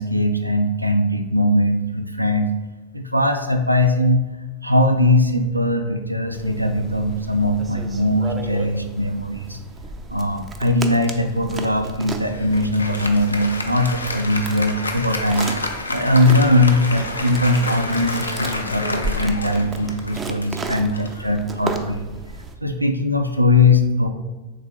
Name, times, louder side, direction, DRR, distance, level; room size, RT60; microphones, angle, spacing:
voice 1, 0.0-2.5 2.9-4.2 4.6-9.6 10.1-15.5 15.9-22.1 22.6-24.1, left 1 dB, 85° right, 6 dB, 0.3 m, -20 dB
sound 1, 6.3-22.6, right 3 dB, 20° right, 0.4 m, -34 dB
Applause, 12.2-22.0, left 2 dB, 80° left, 0.4 m, -30 dB
3.5 x 3.2 x 3.5 m, 1.2 s
figure-of-eight pair, 90°, 0 cm